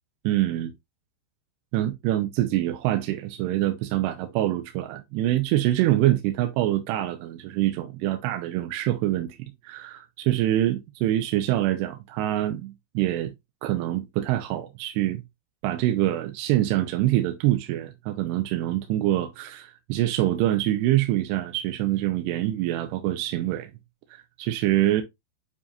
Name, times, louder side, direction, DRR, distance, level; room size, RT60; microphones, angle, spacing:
voice 1, 0.2-0.7 1.7-13.3 13.6-15.2 15.6-23.7 24.4-25.0, right 14 dB, 80° right, 2.6 m, -25 dB
9.7 x 4.3 x 2.5 m
omnidirectional pair, 5.3 m